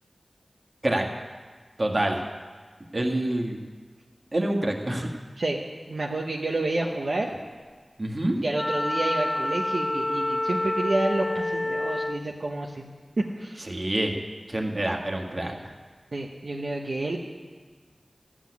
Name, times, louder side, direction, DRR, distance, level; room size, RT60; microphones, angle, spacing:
voice 1, 1.8-2.2 2.9-3.6 4.3-5.1 8.0-8.4 13.7-14.1 14.5-15.6, right 1 dB, 50° right, 1 dB, 1.8 m, -26 dB
voice 2, 5.9-7.3 8.4-12.9 13.2-13.8 16.1-17.2, right 2 dB, 70° right, -2 dB, 1.0 m, -29 dB
Wind instrument woodwind instrument, 8.5-12.3, left 1 dB, 25° left, 0.4 m, -28 dB
14.0 x 6.3 x 9.7 m, 1.5 s
cardioid pair, 40°, 0 cm